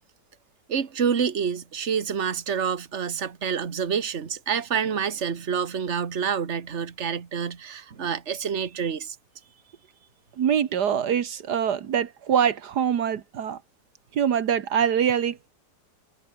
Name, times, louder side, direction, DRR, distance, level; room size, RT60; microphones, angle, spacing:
voice 1, 0.7-9.2, right 7 dB, 45° right, 1.8 m, -27 dB
voice 2, 10.4-13.6 14.1-15.5, right 8 dB, 80° right, 1.8 m, -24 dB
omnidirectional pair, 1.7 m